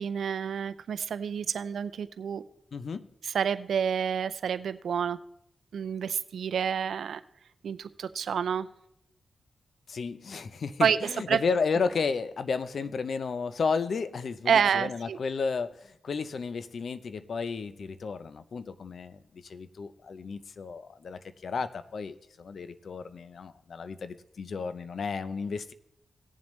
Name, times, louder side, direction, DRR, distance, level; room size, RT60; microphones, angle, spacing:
voice 1, 0.0-2.4 3.2-5.2 5.7-7.2 7.6-8.7 10.8-11.0 11.3-11.4 14.5-15.2, right 7 dB, 90° right, 14 dB, 0.4 m, -28 dB
voice 2, 2.7-3.1 9.9-25.7, left 5 dB, 70° left, 13 dB, 0.6 m, -33 dB
18.5 x 7.3 x 3.1 m, 0.77 s
cardioid pair, 65°, 0 cm